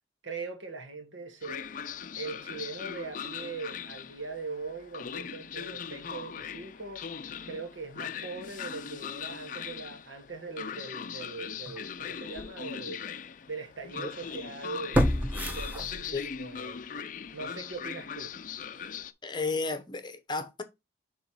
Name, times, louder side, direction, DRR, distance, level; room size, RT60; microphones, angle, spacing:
voice 1, 0.2-1.7 2.2-7.0 7.4-13.0 13.5-15.0 15.5-16.8 17.3-18.3, right 4 dB, 85° right, 1.4 m, -41 dB
Train, 1.4-19.1, left 7 dB, 45° left, 0.4 m, -40 dB
sound 1, 11.6-11.8 12.4-12.5 14.9-16.4 16.8-16.9, equal, 10° right, 0.8 m, -28 dB
voice 2, 19.2-20.6, left 3 dB, 25° left, 0.8 m, -33 dB
7.1 x 3.1 x 4.7 m
head